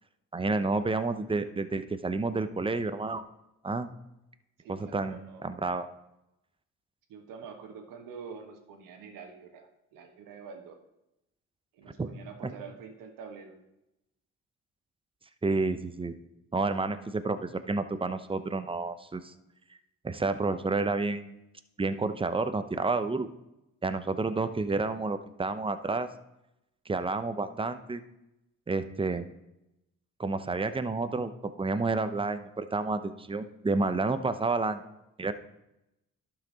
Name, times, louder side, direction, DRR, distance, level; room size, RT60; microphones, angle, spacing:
voice 1, 0.3-3.2 3.6-3.9 4.7-5.9 12.0-12.1 15.4-16.1 16.5-19.3 19.7-19.8 20.0-21.4 21.8-23.3 23.8-26.1 26.9-28.0 28.7-29.3 30.2-31.3 31.6-34.8 35.2-35.3, right 3 dB, 15° right, 11 dB, 0.7 m, -30 dB
voice 2, 4.6-5.6 7.1-10.8 11.7-13.5, right 6 dB, 75° right, 4 dB, 1.4 m, -46 dB
11.5 x 5.9 x 3.9 m, 0.89 s
supercardioid pair, 55°, 33 cm